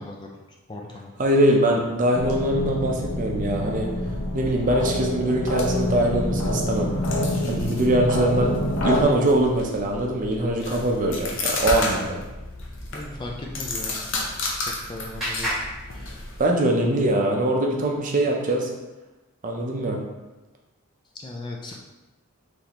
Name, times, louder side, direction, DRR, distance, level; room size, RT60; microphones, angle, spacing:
voice 1, 0.0-1.1 10.7-10.9 12.9-14.1 14.6-15.5 15.9-16.2 21.1-21.8, left 2 dB, 20° left, -1 dB, 0.3 m, -38 dB
voice 2, 1.2-3.9 4.3-6.9 7.5-8.5 8.8-12.2 16.4-18.7 19.4-20.0, right 1 dB, 35° right, 0 dB, 0.5 m, -22 dB
sound 1, 2.1-9.0, left 1 dB, 90° left, 0.9 m, -26 dB
sound 2, 5.4-16.5, left 2 dB, 60° left, 0.6 m, -33 dB
Clapping, 14.1-16.7, equal, ahead, 1.3 m, -34 dB
4.1 x 3.2 x 2.9 m, 1.1 s
head